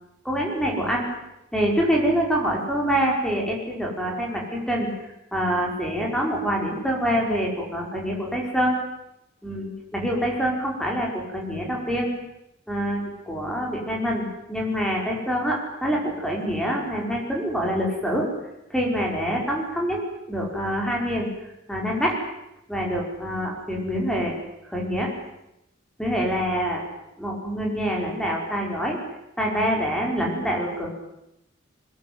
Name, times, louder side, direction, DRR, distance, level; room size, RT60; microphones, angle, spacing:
voice 1, 0.3-1.1 1.5-8.8 9.4-12.1 12.7-18.3 18.7-20.0 20.3-21.3 21.7-22.2 22.7-24.4 24.7-25.1 26.0-26.8 27.2-29.0 29.4-30.9, equal, 5° left, -1 dB, 5.2 m, -25 dB
22.5 x 20.5 x 9.6 m, 0.86 s
head